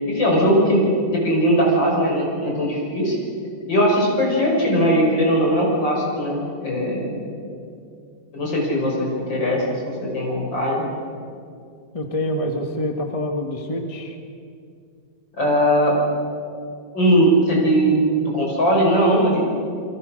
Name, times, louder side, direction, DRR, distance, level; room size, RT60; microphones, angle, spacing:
voice 1, 0.1-3.2 3.7-7.2 8.3-10.9 15.4-16.0 16.9-19.6, equal, 70° left, -2 dB, 7.0 m, -19 dB
voice 2, 11.9-14.2, left 1 dB, 20° left, 3 dB, 1.6 m, -26 dB
28.0 x 23.0 x 6.6 m, 2.4 s
omnidirectional pair, 2.1 m